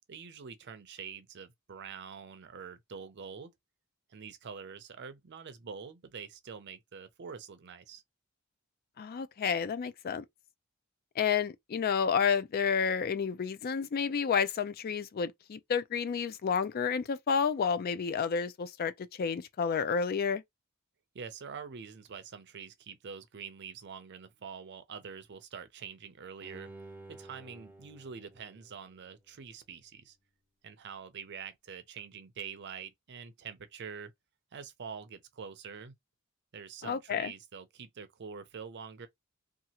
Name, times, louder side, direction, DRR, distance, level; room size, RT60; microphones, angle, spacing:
voice 1, 0.1-3.5 4.1-8.0 21.1-26.7 27.1-30.2 30.6-34.1 34.5-35.9 36.5-39.1, right 6 dB, 55° right, 0.5 m, -45 dB
voice 2, 9.0-10.2 11.2-18.9 19.2-20.4 36.8-37.3, left 6 dB, 45° left, 0.4 m, -30 dB
Bowed string instrument, 26.4-29.5 29.9-30.0, right 2 dB, 10° right, 0.6 m, -52 dB
2.8 x 2.3 x 2.8 m
head